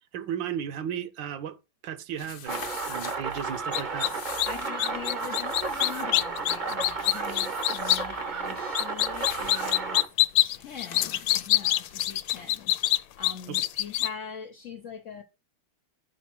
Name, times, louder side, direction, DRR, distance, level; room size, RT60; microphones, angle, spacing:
voice 1, 0.1-1.6 1.8-4.1 13.5-13.6, right 9 dB, 65° right, 1.4 m, -35 dB
sound 1, 2.2-12.8, left 8 dB, 55° left, 1.2 m, -46 dB
sound 2, 2.5-10.1, right 4 dB, 40° right, 0.7 m, -33 dB
sound 3, 3.7-4.1 4.4-4.5 4.8-8.0 8.7-14.1, left 15 dB, 90° left, 1.5 m, -24 dB
voice 2, 4.4-10.0 10.4-15.2, left 6 dB, 75° left, 0.7 m, -42 dB
10.5 x 4.0 x 5.9 m
omnidirectional pair, 2.3 m